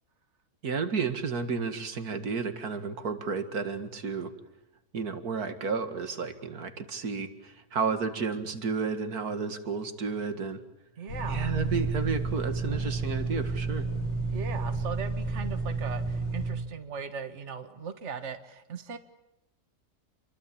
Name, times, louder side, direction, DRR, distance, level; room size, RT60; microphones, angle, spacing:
voice 1, 0.6-4.3 4.9-10.6 11.3-13.9, right 5 dB, 80° right, 9 dB, 2.4 m, -32 dB
voice 2, 11.0-11.6 14.3-19.0, right 6 dB, 50° right, 8 dB, 1.9 m, -38 dB
sound 1, 11.1-16.5, right 3 dB, 45° left, 7.1 m, -31 dB
28.5 x 23.0 x 8.8 m, 0.88 s
omnidirectional pair, 1.6 m